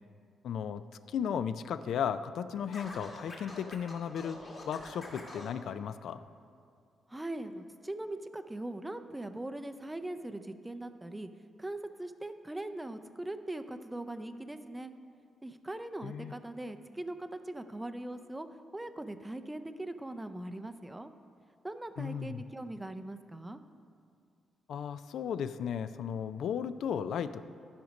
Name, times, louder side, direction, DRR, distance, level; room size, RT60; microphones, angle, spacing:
voice 1, 0.4-6.2 16.0-16.3 22.0-22.4 24.7-27.4, left 8 dB, 70° left, 12 dB, 0.3 m, -35 dB
Scratching (performance technique), 2.7-5.5, left 2 dB, 35° left, 1.9 m, -45 dB
voice 2, 7.1-11.3 11.6-14.9 15.4-18.5 18.7-21.1 21.6-23.6, right 1 dB, 10° right, 9 dB, 0.4 m, -40 dB
12.5 x 5.1 x 5.2 m, 2.3 s
cardioid pair, 125°, 0 cm